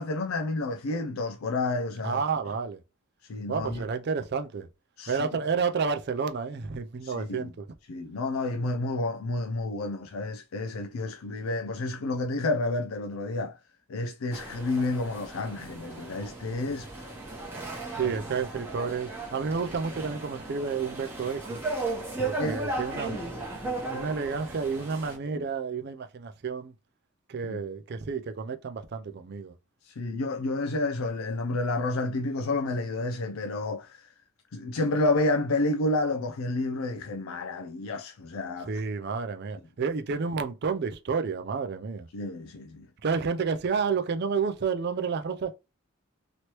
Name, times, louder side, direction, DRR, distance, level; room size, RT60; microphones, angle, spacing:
voice 1, 0.0-2.2 3.3-3.8 5.0-5.3 7.0-7.5 7.9-13.6 13.9-17.1 17.9-18.1 22.4-22.6 23.1-23.2 25.3-25.4 27.4-27.6 29.8-34.1 34.5-38.7 42.1-42.9, left 2 dB, 75° left, 0.4 m, -30 dB
voice 2, 2.0-2.8 3.5-4.7 5.1-7.7 18.0-21.6 22.2-23.2 23.6-26.7 27.3-29.5 38.7-42.1 43.0-45.5, right 5 dB, 50° right, 0.4 m, -30 dB
sound 1, 14.3-25.2, right 2 dB, 10° right, 0.9 m, -36 dB
3.0 x 3.0 x 2.9 m
head